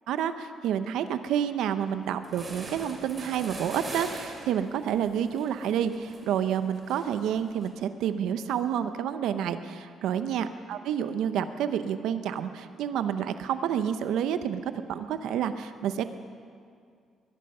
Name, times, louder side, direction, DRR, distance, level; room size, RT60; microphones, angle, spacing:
voice 1, 0.1-16.0, right 9 dB, 85° right, 10 dB, 0.7 m, -29 dB
sound 1, 1.9-2.0 2.2-7.7, right 2 dB, 35° right, 3.1 m, -42 dB
21.0 x 11.5 x 5.5 m, 2.2 s
cardioid pair, 90°, 0 cm